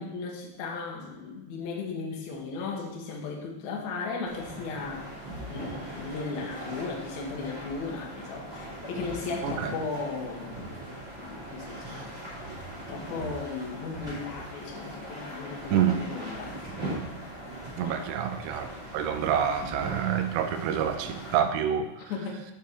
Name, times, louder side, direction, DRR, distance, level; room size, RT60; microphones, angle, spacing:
voice 1, 0.0-5.1 5.5-10.8 11.2-12.1 12.7-16.5 17.8-18.0 22.0-22.4, left 4 dB, 85° left, -1 dB, 1.6 m, -36 dB
sound 1, 4.2-21.4, right 1 dB, 25° right, 2.2 m, -40 dB
voice 2, 9.4-9.7 11.9-12.0 15.7-16.0 17.8-22.1, right 9 dB, 85° right, 7 dB, 2.6 m, -28 dB
7.1 x 6.7 x 3.7 m, 0.93 s
omnidirectional pair, 5.3 m